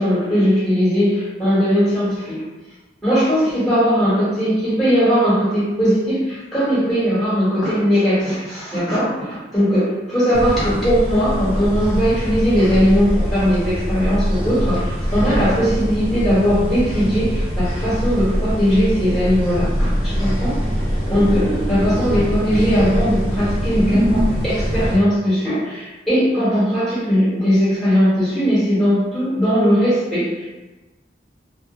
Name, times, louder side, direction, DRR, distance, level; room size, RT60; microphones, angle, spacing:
voice 1, 0.0-2.4 3.0-20.6 21.1-30.5, equal, ahead, -12 dB, 1.0 m, -19 dB
sound 1, 10.3-25.0, equal, 30° right, 1.0 m, -23 dB
2.2 x 2.0 x 2.8 m, 1.1 s
head